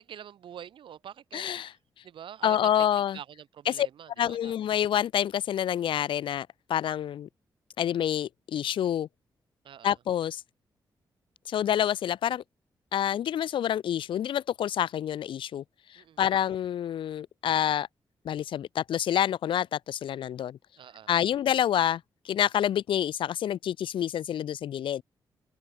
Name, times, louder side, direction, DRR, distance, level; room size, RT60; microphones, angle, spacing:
voice 1, 0.0-1.5 2.0-2.7 3.1-4.5 9.6-9.9 16.0-16.2 20.8-21.2, right 9 dB, 85° right, 7.5 m, -45 dB
voice 2, 1.3-1.7 2.4-3.2 3.6-3.9 4.2-7.3 7.8-9.1 9.8-10.4 11.5-12.4 12.9-15.6 15.9-17.9 18.2-20.6 21.1-25.0, left 10 dB, 85° left, 1.5 m, -27 dB
open air
cardioid pair, 70°, 8 cm